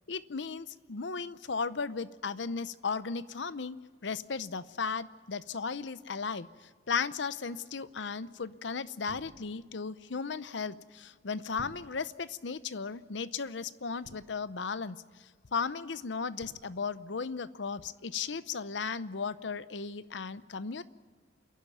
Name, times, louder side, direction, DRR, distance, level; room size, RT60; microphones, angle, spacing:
voice 1, 0.1-20.8, left 5 dB, 70° left, 14 dB, 0.7 m, -36 dB
sound 1, 9.1-9.9 11.6-12.4 14.0-14.8 16.4-17.0, right 3 dB, 75° right, 0.7 m, -54 dB
28.5 x 11.5 x 9.4 m, 1.5 s
head